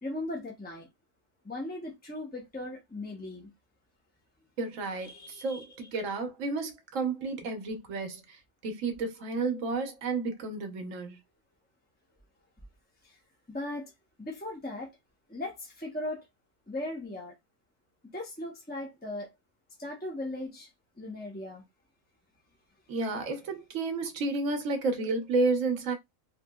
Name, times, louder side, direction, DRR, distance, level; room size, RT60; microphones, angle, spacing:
voice 1, 0.0-0.9 1.4-3.5 5.0-5.9 13.0-13.2 13.5-13.9 14.2-15.0 15.3-16.3 16.7-17.3 18.1-19.3 19.8-20.7 21.0-21.6, left 1 dB, 10° left, 0.5 m, -38 dB
voice 2, 4.6-8.2 8.6-11.2 22.9-25.9, right 3 dB, 75° right, 1.2 m, -31 dB
3.1 x 2.8 x 2.3 m
omnidirectional pair, 1.4 m